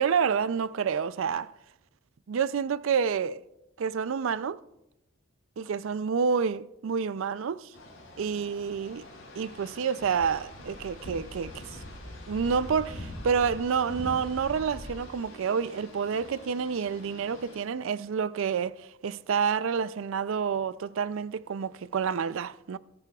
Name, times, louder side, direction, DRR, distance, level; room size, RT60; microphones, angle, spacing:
voice 1, 0.0-1.5 2.3-3.4 3.8-4.6 5.6-7.7 8.2-9.0 9.4-11.8 12.3-22.8, right 6 dB, 70° right, 0.4 m, -28 dB
sound 1, 7.7-17.6, left 1 dB, 65° left, 4.9 m, -44 dB
21.0 x 10.5 x 2.3 m
head